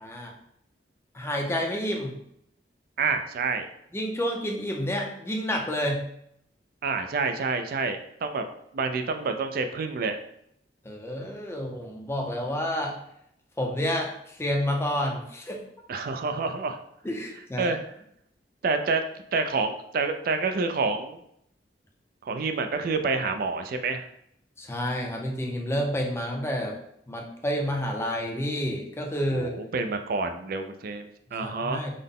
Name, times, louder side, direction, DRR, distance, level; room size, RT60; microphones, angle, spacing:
voice 1, 0.0-0.3 1.1-2.1 3.9-6.0 10.8-13.0 13.6-15.6 17.0-17.7 24.6-26.8 27.1-29.5 31.4-31.9, equal, 15° left, 1 dB, 0.5 m, -29 dB
voice 2, 3.0-3.7 6.8-8.5 8.7-10.2 15.9-16.8 17.6-17.8 18.6-19.0 19.3-21.2 22.2-24.1 29.3-31.9, right 4 dB, 55° right, 7 dB, 0.3 m, -28 dB
3.8 x 2.1 x 3.6 m, 0.74 s
head